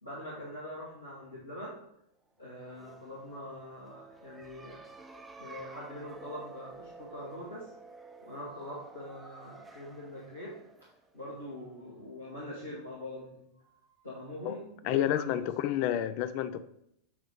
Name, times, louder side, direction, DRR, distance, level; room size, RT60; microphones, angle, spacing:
voice 1, 0.0-1.7 2.4-4.8 5.1-7.7 8.2-10.6 11.1-13.8 14.0-15.3, left 1 dB, 80° left, -7 dB, 1.9 m, -43 dB
sound 1, 2.5-12.0, right 3 dB, 10° right, 0.7 m, -52 dB
voice 2, 14.8-16.6, left 11 dB, 45° left, 13 dB, 0.4 m, -29 dB
8.0 x 3.1 x 5.2 m, 0.76 s
figure-of-eight pair, 90°, 0 cm